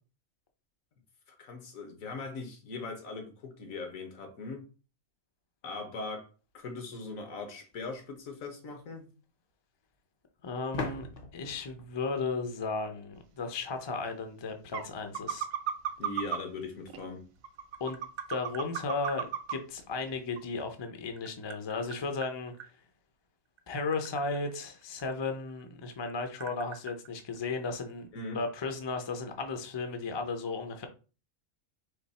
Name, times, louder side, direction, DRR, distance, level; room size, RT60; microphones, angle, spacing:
voice 1, 1.4-4.7 5.6-6.3 6.5-9.1 16.0-17.2 28.1-28.4, left 3 dB, 75° left, 1.5 m, -40 dB
sound 1, 7.7-7.8 10.7-13.4, left 3 dB, 50° left, 0.8 m, -41 dB
voice 2, 10.4-11.1 11.3-15.5 17.8-18.0 18.3-22.5 23.7-28.1 28.3-30.9, left 4 dB, 35° left, 0.4 m, -35 dB
sound 2, 14.0-14.1 14.7-14.9 15.1-16.4 16.9-17.0 17.4-19.5 20.0-20.1 20.4-20.5, right 9 dB, 75° right, 1.0 m, -33 dB
Tap, 17.4-19.2 20.6-22.7 23.5-25.6 25.9-27.9, right 8 dB, 60° right, 0.6 m, -47 dB
3.9 x 3.1 x 4.1 m
omnidirectional pair, 1.4 m